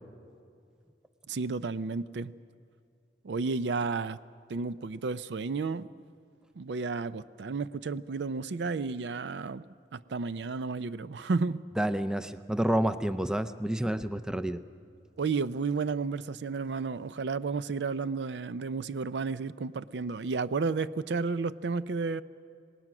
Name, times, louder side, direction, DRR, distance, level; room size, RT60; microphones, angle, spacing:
voice 1, 1.3-2.3 3.2-4.2 4.5-5.9 6.6-9.7 9.9-11.6 15.2-22.2, right 4 dB, 75° right, 16 dB, 0.5 m, -32 dB
voice 2, 11.8-14.6, right 1 dB, 5° right, 11 dB, 0.5 m, -29 dB
26.0 x 19.5 x 6.0 m, 2.3 s
head